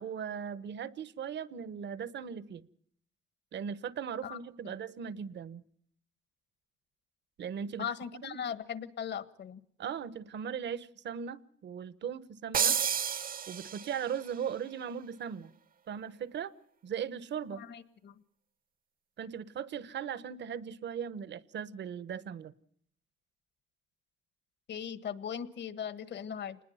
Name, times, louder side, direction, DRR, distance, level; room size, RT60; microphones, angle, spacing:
voice 1, 0.0-2.7 3.5-5.6 7.4-7.9 8.2-8.4 9.8-12.8 13.5-15.5 15.9-16.5 16.8-17.6 19.2-22.5, right 8 dB, 65° right, 1.1 m, -38 dB
voice 2, 7.8-9.6 17.5-18.1 24.7-26.6, left 8 dB, 60° left, 1.5 m, -39 dB
sound 1, 12.5-14.2, right 8 dB, 45° right, 0.8 m, -30 dB
27.0 x 20.5 x 5.7 m
cardioid pair, 90°, 20 cm